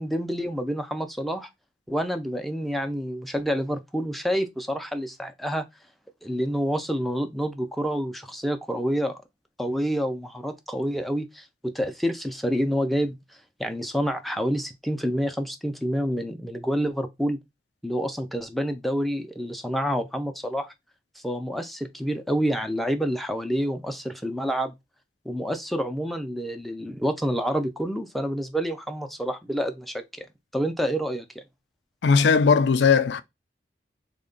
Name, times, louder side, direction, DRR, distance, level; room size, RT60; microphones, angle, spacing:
voice 1, 0.0-1.5 1.9-5.7 6.2-9.2 9.6-13.2 13.6-17.4 17.8-20.7 21.2-24.7 25.3-30.3 30.5-31.4, equal, ahead, 0.4 m, -28 dB
voice 2, 32.0-33.2, left 5 dB, 85° left, 0.4 m, -18 dB
3.5 x 2.2 x 3.7 m
head